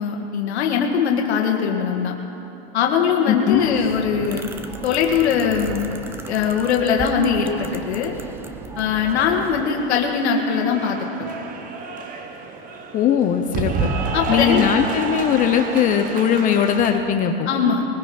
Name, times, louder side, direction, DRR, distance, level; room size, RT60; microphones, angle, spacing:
voice 1, 0.0-2.2 2.7-4.5 4.8-5.9 6.3-8.1 8.8-11.3 14.1-14.7 17.5-17.9, left 6 dB, 85° left, 1 dB, 1.7 m, -21 dB
voice 2, 3.3-3.6 12.9-13.7 14.3-17.5, left 8 dB, 25° left, 6 dB, 0.7 m, -19 dB
sound 1, 3.5-9.6, right 4 dB, 10° right, 0.3 m, -36 dB
Cheering / Applause, 9.3-17.0, right 4 dB, 25° right, 1.1 m, -29 dB
20.5 x 15.0 x 4.3 m, 2.9 s
supercardioid pair, 145°, 32 cm